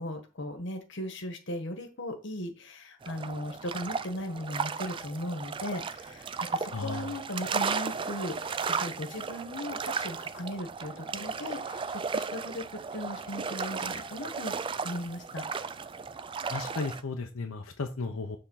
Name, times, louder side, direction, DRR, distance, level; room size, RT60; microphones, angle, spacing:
voice 1, 0.0-12.6 12.9-15.4, left 1 dB, 60° left, 6 dB, 1.3 m, -38 dB
sound 1, 3.0-17.0, right 5 dB, 25° right, 0.3 m, -35 dB
sound 2, 4.6-5.4 6.4-7.1 9.1-9.9 10.9-11.6 13.6-14.4, left 1 dB, ahead, 2.8 m, -50 dB
voice 2, 6.7-7.2 16.4-18.4, left 3 dB, 85° left, 4 dB, 0.8 m, -35 dB
6.8 x 3.8 x 5.6 m, 0.34 s
head